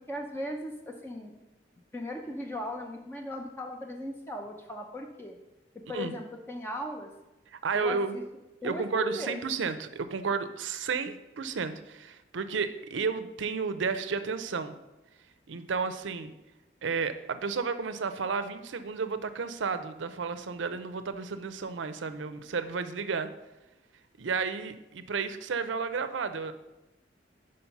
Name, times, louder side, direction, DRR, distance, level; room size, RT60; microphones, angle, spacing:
voice 1, 0.1-1.3 1.9-5.4 5.9-7.1 7.7-8.2 8.6-9.4, left 1 dB, 10° left, 2 dB, 0.5 m, -37 dB
voice 2, 7.6-8.2 8.6-14.7 15.5-16.3 16.8-23.3 24.2-26.5, right 5 dB, 90° right, 11 dB, 0.5 m, -32 dB
5.5 x 5.0 x 5.9 m, 1.0 s
head